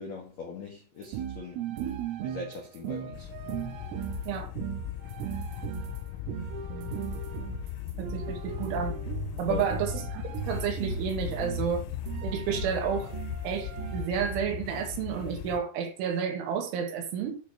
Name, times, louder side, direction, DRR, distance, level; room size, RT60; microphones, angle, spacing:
voice 1, 0.0-1.6 2.2-3.3 9.5-9.7, left 4 dB, 70° left, 1.7 m, -40 dB
sound 1, 1.0-14.4, right 10 dB, 90° right, 3.7 m, -37 dB
sound 2, 3.1-15.6, left 13 dB, 85° left, 3.2 m, -38 dB
voice 2, 8.0-8.9 9.4-11.9 12.2-13.2 13.4-17.4, right 7 dB, 75° right, 3.6 m, -31 dB
11.0 x 6.8 x 2.9 m
omnidirectional pair, 5.8 m